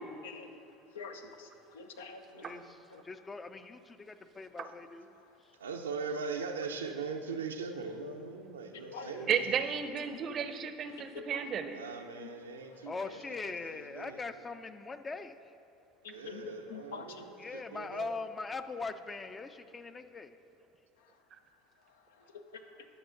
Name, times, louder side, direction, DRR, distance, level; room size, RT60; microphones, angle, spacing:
voice 1, 0.2-0.6 0.9-2.2 2.9-3.0 8.9-9.1 10.1-10.2 11.0-11.4 12.2-12.3 16.0-17.2 22.1-22.6, left 5 dB, 80° left, 6 dB, 0.6 m, -46 dB
voice 2, 2.3-2.7 5.5-9.8 11.7-14.2 16.0-18.1, right 5 dB, 85° right, 4 dB, 0.6 m, -41 dB
voice 3, 3.0-5.1 8.9-9.3 12.9-15.5 17.4-20.4, left 3 dB, 25° left, 10 dB, 0.5 m, -41 dB
voice 4, 9.3-11.8, right 7 dB, 45° right, 10 dB, 0.6 m, -33 dB
11.0 x 6.2 x 3.9 m, 2.6 s
hypercardioid pair, 75°, 0 cm